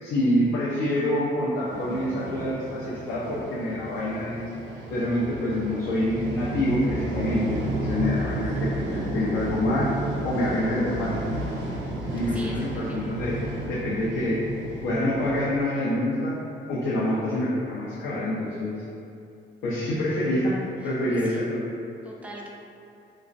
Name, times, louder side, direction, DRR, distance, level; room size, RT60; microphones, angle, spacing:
voice 1, 0.0-4.5 4.9-9.9 10.2-11.1 12.1-13.3 13.7-14.4 14.8-16.4 16.7-18.8 19.6-21.7, left 1 dB, 85° left, -8 dB, 0.5 m, -26 dB
sound 1, 1.7-15.4, right 1 dB, 85° right, 0.4 m, -32 dB
voice 2, 11.8-13.1 20.8-21.4 22.0-22.5, right 1 dB, 5° right, -3 dB, 0.3 m, -43 dB
2.4 x 2.0 x 2.4 m, 2.6 s
cardioid pair, 90°, 20 cm